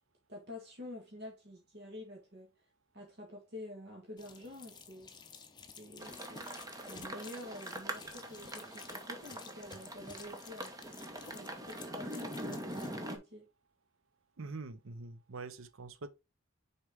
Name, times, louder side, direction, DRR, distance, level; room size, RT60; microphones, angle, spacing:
voice 1, 0.3-2.5 2.9-5.1 5.8-6.6 6.9-10.8 11.3-13.5, left 1 dB, 50° right, 1.5 m, -48 dB
sound 1, 4.2-13.0, left 5 dB, 20° left, 0.7 m, -53 dB
sound 2, 6.0-13.2, right 1 dB, 15° right, 0.8 m, -43 dB
voice 2, 14.4-16.1, right 3 dB, 75° right, 0.7 m, -44 dB
6.3 x 4.3 x 3.5 m
head